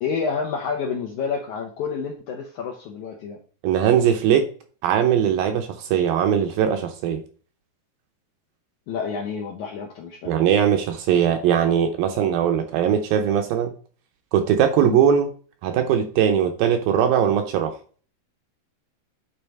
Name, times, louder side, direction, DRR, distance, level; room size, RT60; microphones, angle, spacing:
voice 1, 0.0-3.4 8.9-10.3 14.8-15.0, left 5 dB, 80° left, 0 dB, 1.7 m, -29 dB
voice 2, 3.6-4.5 4.8-7.2 10.3-13.7 14.3-15.3 15.6-17.7, right 9 dB, 75° right, 6 dB, 2.2 m, -20 dB
8.8 x 3.9 x 4.6 m, 0.40 s
omnidirectional pair, 4.6 m